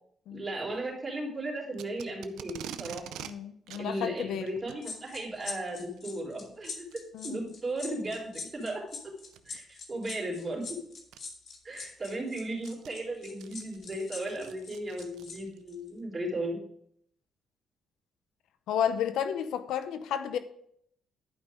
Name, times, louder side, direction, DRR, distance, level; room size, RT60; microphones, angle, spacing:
voice 1, 0.3-3.0 3.8-8.8 9.5-10.8 11.6-16.6, right 1 dB, 30° right, -2 dB, 3.7 m, -36 dB
Packing tape duct tape, 1.7-3.3 3.7-3.8 4.6-4.8 6.0-6.2 6.9-7.0 7.6-7.7 9.3-9.6 10.6-10.7 11.1-11.2 11.7-15.6, right 10 dB, 85° right, 0.5 m, -45 dB
voice 2, 3.2-4.5 7.1-7.5 18.7-20.4, left 9 dB, 80° left, 11 dB, 0.7 m, -32 dB
sound 1, 4.8-15.4 15.7-15.9, left 5 dB, 55° left, 1.7 m, -43 dB
11.0 x 5.4 x 3.7 m, 0.68 s
cardioid pair, 90°, 0 cm